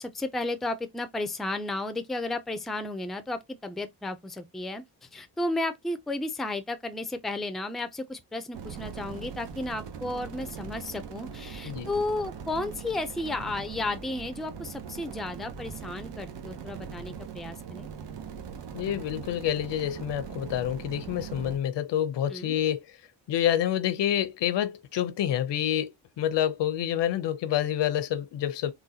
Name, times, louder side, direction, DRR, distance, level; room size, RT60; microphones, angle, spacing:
voice 1, 0.0-17.9 22.3-22.6, left 2 dB, ahead, 0.4 m, -33 dB
sound 1, 8.5-21.6, right 7 dB, 80° right, 0.9 m, -41 dB
voice 2, 18.7-22.8 23.3-25.9 26.2-28.7, left 11 dB, 80° left, 0.7 m, -27 dB
3.9 x 2.3 x 2.7 m
cardioid pair, 115°, 42 cm